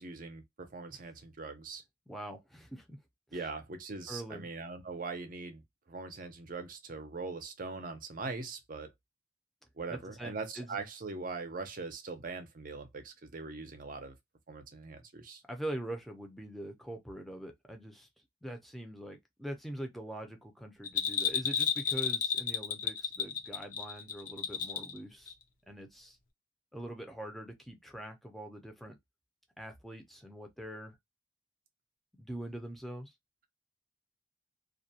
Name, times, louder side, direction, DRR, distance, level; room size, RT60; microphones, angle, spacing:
voice 1, 0.0-1.8 3.3-5.6 5.9-8.9 9.8-14.1 14.5-15.4, right 4 dB, 50° right, 0.6 m, -41 dB
voice 2, 2.1-3.0 3.3-3.4 4.1-4.5 9.9-10.8 15.5-18.1 18.4-25.3 25.7-26.2 26.7-29.0 29.6-31.0 32.2-33.1, right 1 dB, ahead, 0.6 m, -43 dB
Bell, 20.8-25.0 25.3-25.4, left 7 dB, 50° left, 0.5 m, -32 dB
2.4 x 2.2 x 2.7 m
head